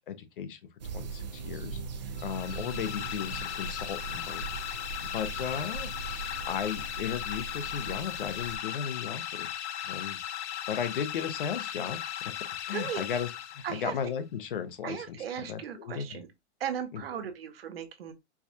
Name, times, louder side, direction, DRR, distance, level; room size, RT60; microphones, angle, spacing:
voice 1, 0.1-0.6 0.9-1.8 2.2-4.4 5.0-5.9 6.4-10.2 10.7-12.4 12.7-16.2 16.9-17.0, left 8 dB, 50° left, 0.6 m, -35 dB
sound 1, 0.8-8.6, right 5 dB, 40° right, 0.4 m, -40 dB
sound 2, 2.2-14.0, left 11 dB, 90° left, 0.5 m, -37 dB
voice 2, 12.7-13.0 13.6-13.9 14.8-16.3 16.6-18.1, right 9 dB, 60° right, 0.8 m, -37 dB
4.6 x 2.2 x 2.7 m
hypercardioid pair, 175°, 34 cm